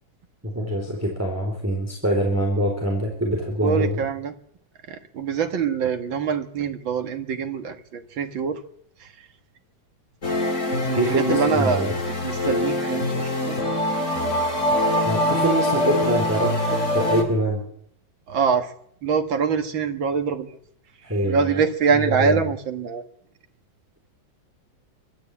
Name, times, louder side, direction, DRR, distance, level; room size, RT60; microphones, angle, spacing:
voice 1, 0.4-4.0 10.9-11.9 15.0-17.6 21.0-21.6 22.2-22.4, right 1 dB, 5° right, 0 dB, 4.0 m, -24 dB
voice 2, 3.6-4.3 4.9-8.6 9.0-9.1 10.8-11.9 12.2-13.6 18.3-18.7 19.0-20.6 21.2-23.0, right 6 dB, 80° right, 7 dB, 2.4 m, -24 dB
sound 1, 10.2-17.2, left 1 dB, 40° left, 3.5 m, -24 dB
23.5 x 13.5 x 8.4 m, 0.69 s
omnidirectional pair, 2.1 m